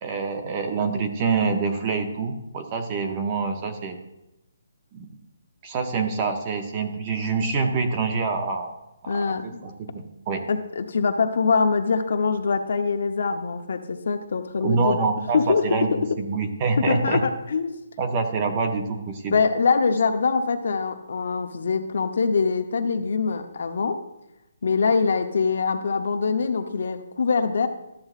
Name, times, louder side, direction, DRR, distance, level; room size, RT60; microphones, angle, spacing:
voice 1, 0.0-4.0 4.9-5.1 5.6-8.7 9.1-10.4 14.6-15.9 16.2-17.2 18.0-19.4, right 4 dB, 20° right, 5 dB, 0.6 m, -26 dB
voice 2, 9.1-9.6 10.5-15.0 15.3-16.2 16.9-17.8 19.3-24.0 24.6-27.7, left 5 dB, 55° left, 6 dB, 0.7 m, -23 dB
13.0 x 7.7 x 2.4 m, 0.91 s
hypercardioid pair, 175°, 0 cm